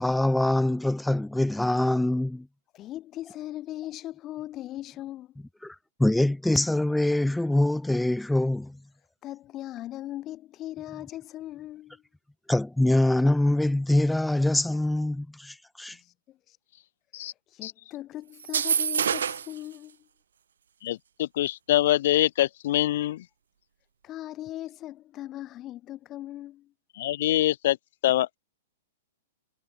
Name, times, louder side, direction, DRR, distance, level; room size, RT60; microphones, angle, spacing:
voice 1, 0.0-2.5 5.6-8.8 12.5-16.0, left 1 dB, 5° left, 0.3 m, -24 dB
voice 2, 2.7-5.3 9.2-12.0 15.9-16.6 17.5-20.1 24.0-26.7, left 14 dB, 25° left, 2.0 m, -39 dB
sound 1, 18.4-19.6, right 8 dB, 90° right, 1.7 m, -26 dB
voice 3, 20.8-23.2 27.0-27.8 28.0-28.4, left 14 dB, 60° left, 1.4 m, -24 dB
hypercardioid pair, 150°, 0 cm